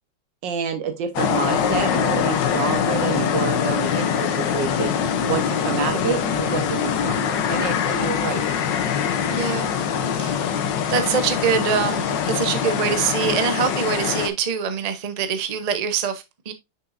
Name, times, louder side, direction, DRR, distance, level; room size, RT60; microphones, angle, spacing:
voice 1, 0.4-5.0 5.3-8.4, right 7 dB, 85° right, 1.7 m, -28 dB
sound 1, 1.2-14.3, left 7 dB, 80° left, 1.5 m, -23 dB
voice 2, 9.3-9.7 10.2-10.3 10.9-16.5, right 7 dB, 60° right, 0.4 m, -24 dB
6.8 x 5.7 x 2.5 m
omnidirectional pair, 2.0 m